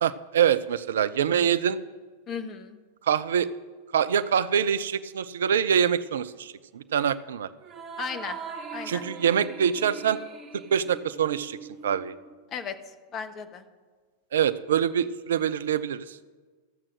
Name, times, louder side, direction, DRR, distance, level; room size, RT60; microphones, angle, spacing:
voice 1, 0.0-1.8 3.0-3.5 3.9-7.5 8.9-10.2 10.5-11.6 11.8-12.1 14.3-16.2, right 8 dB, 60° right, 16 dB, 0.5 m, -25 dB
voice 2, 2.3-2.8 8.0-8.4 8.7-9.0 12.5-12.7 13.1-13.7, left 7 dB, 30° left, 8 dB, 1.1 m, -35 dB
sound 1, 7.6-12.3, right 5 dB, 30° right, 2.3 m, -41 dB
14.0 x 7.5 x 6.3 m, 1.4 s
figure-of-eight pair, 90°, 0 cm